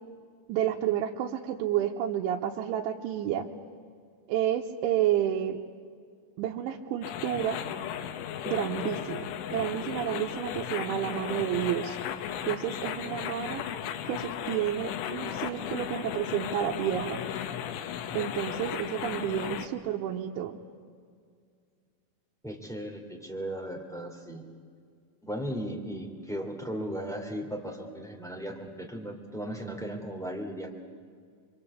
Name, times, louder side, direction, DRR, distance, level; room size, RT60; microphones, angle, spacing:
voice 1, 0.5-3.5 4.3-5.6 6.4-7.6 8.5-9.3 9.5-12.0 12.5-13.6 14.1-17.2 18.2-20.6, right 11 dB, 90° right, -1 dB, 3.4 m, -30 dB
sound 1, 7.0-19.7, left 9 dB, 90° left, 3.7 m, -35 dB
voice 2, 22.4-24.5 25.2-30.7, equal, ahead, -1 dB, 1.4 m, -36 dB
26.5 x 24.0 x 8.6 m, 2.1 s
omnidirectional pair, 5.4 m